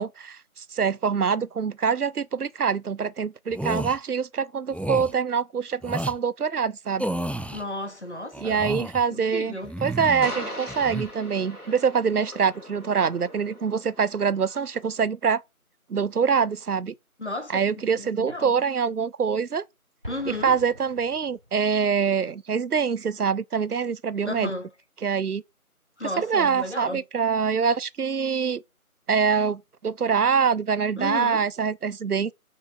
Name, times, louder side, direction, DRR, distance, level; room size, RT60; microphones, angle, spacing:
voice 1, 0.0-7.1 8.4-9.6 9.8-15.4 15.9-16.9 17.5-19.6 20.3-24.5 25.0-25.4 26.2-28.6 29.1-32.3, right 6 dB, 90° right, 0.7 m, -25 dB
sound 1, 3.5-4.0 4.7-5.1 5.8-6.2 7.0-7.6 8.3-9.0 9.6-10.3 10.7-11.1, right 1 dB, 5° left, 0.3 m, -31 dB
sound 2, 7.4-14.8, left 1 dB, 85° left, 3.1 m, -41 dB
voice 2, 7.5-8.6 9.1-9.7 17.2-18.5 20.1-20.5 24.2-24.7 26.0-27.0 31.0-31.4, left 1 dB, 50° left, 1.4 m, -33 dB
Explosion, 20.0-21.9, left 1 dB, 40° right, 0.8 m, -43 dB
5.7 x 5.4 x 3.8 m
figure-of-eight pair, 180°, 44 cm